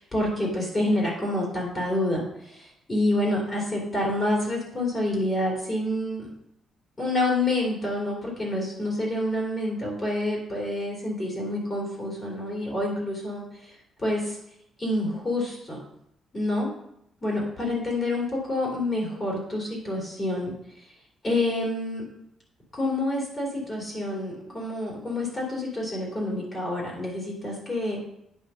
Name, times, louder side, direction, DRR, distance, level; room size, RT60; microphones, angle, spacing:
voice 1, 0.0-6.3 7.0-14.4 14.8-15.8 16.3-16.7 17.2-20.9 21.2-22.0 22.7-28.0, left 1 dB, 20° left, -3 dB, 2.9 m, -28 dB
9.2 x 5.3 x 5.6 m, 0.75 s
cardioid pair, 170°, 0 cm